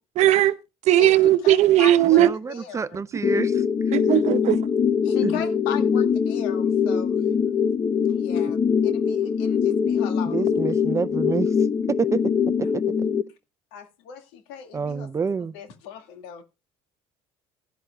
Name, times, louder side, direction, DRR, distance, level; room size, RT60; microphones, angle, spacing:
voice 1, 0.2-0.5 0.8-2.3 3.9-4.6, right 13 dB, 55° right, 1.0 m, -17 dB
voice 2, 1.0-3.1 3.4-3.5 5.0-7.2 8.1-8.6 8.8-10.5 13.7-16.4, left 8 dB, 90° left, 2.1 m, -38 dB
voice 3, 2.2-3.6 5.2-5.3 10.3-11.5 11.9-12.2 12.6-12.8 14.7-15.5, right 5 dB, 20° right, 0.5 m, -27 dB
sound 1, 3.2-13.2, left 7 dB, 30° left, 0.9 m, -23 dB
16.5 x 11.5 x 2.3 m
cardioid pair, 115°, 14 cm